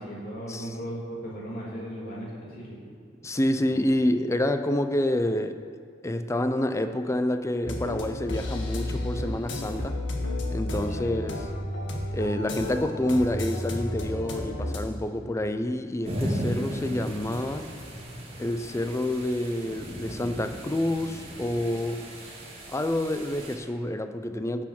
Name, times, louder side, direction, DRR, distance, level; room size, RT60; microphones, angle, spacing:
voice 1, 0.0-2.8 11.0-11.1, equal, 50° left, -6 dB, 3.3 m, -37 dB
voice 2, 3.2-5.6 6.0-10.0 10.5-11.5 12.1-17.7 18.4-22.0 22.7-24.6, left 1 dB, 15° left, 9 dB, 0.5 m, -28 dB
sound 1, 7.6-14.8, left 1 dB, 85° left, 1.6 m, -32 dB
sound 2, 16.0-23.5, equal, 35° right, 2.3 m, -36 dB
15.5 x 6.2 x 6.0 m, 2.2 s
head